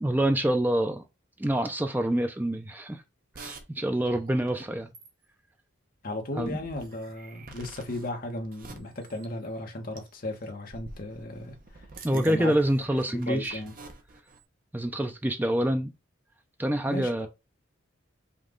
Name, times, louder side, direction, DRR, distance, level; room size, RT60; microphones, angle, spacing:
voice 1, 0.0-1.0 1.4-3.0 3.4-4.9 6.4-6.6 12.0-13.6 14.7-15.9 16.6-17.3, right 1 dB, 10° right, 0.4 m, -26 dB
sound 1, 3.3-3.6 4.0-4.7 4.9-5.2 6.4-9.6 10.0-10.2 10.7-14.4, right 3 dB, 45° right, 0.7 m, -48 dB
voice 2, 6.0-11.9 12.1-12.5 13.1-13.7 16.9-17.3, left 1 dB, 45° left, 1.0 m, -35 dB
5.2 x 2.3 x 3.7 m
head